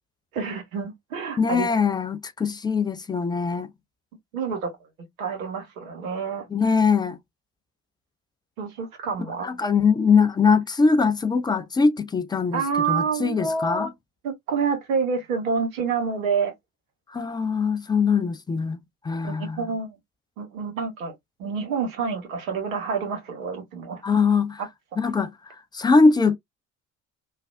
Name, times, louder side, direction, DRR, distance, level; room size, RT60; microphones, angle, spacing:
voice 1, 0.3-1.7 4.3-4.7 5.2-6.5 8.6-9.6 12.5-13.9 14.2-16.5 19.2-20.0 20.4-21.1 21.4-24.0, right 5 dB, 75° right, 1.2 m, -28 dB
voice 2, 1.4-3.7 6.5-7.2 9.4-12.6 12.9-13.9 17.1-18.8 19.0-19.7 24.0-24.6 25.0-26.4, left 5 dB, 10° left, 0.3 m, -22 dB
3.2 x 2.3 x 2.4 m
figure-of-eight pair, 55°, 42 cm